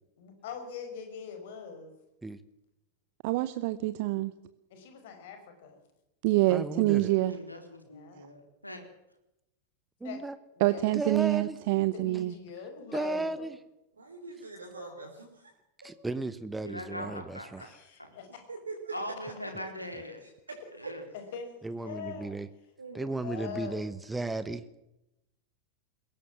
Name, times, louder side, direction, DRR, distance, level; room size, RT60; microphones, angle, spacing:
voice 1, 0.2-1.9 4.7-5.8 7.9-8.2 10.0-10.2 10.6-11.0 11.9-13.5 17.6-18.4 21.3-21.5 21.8-22.4 22.9-23.8, left 7 dB, 55° left, 7 dB, 5.6 m, -42 dB
voice 2, 3.2-4.3 6.2-7.3 10.6-12.3, right 18 dB, 50° right, 14 dB, 0.8 m, -26 dB
voice 3, 6.5-7.1 10.0-10.4 10.9-11.6 12.9-13.5 15.8-17.7 21.6-22.5 22.9-24.6, right 2 dB, 10° right, 14 dB, 1.1 m, -35 dB
voice 4, 7.1-8.8 16.6-17.7 18.9-20.2 20.8-21.0, left 1 dB, 85° left, 5 dB, 4.1 m, -41 dB
voice 5, 14.0-15.5 18.1-18.2 18.5-18.9 20.2-20.3 20.8-20.9 22.8-23.3, right 3 dB, 75° right, 2 dB, 4.1 m, -43 dB
22.0 x 17.5 x 7.5 m, 0.90 s
figure-of-eight pair, 90°, 0 cm